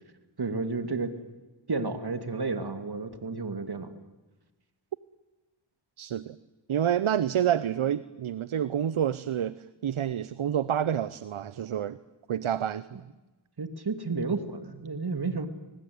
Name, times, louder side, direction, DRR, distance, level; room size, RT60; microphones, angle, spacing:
voice 1, 0.4-1.2 1.7-3.9 13.6-15.5, right 3 dB, 50° right, 9 dB, 2.5 m, -31 dB
voice 2, 6.0-6.4 6.7-9.6 9.8-12.0 12.3-12.9, right 9 dB, 75° right, 16 dB, 0.8 m, -28 dB
30.0 x 20.5 x 9.5 m, 1.2 s
cardioid pair, 55°, 49 cm